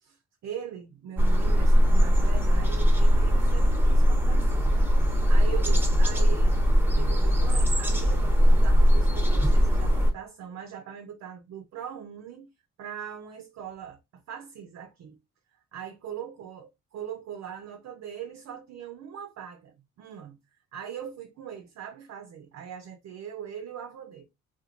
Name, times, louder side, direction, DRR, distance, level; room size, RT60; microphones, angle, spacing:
voice 1, 0.0-6.6 7.0-12.5 12.8-15.2 15.5-24.3, right 8 dB, 60° right, 0.5 m, -41 dB
sound 1, 1.2-10.1, equal, 5° right, 0.7 m, -20 dB
2.9 x 2.3 x 2.4 m
cardioid pair, 90°, 30 cm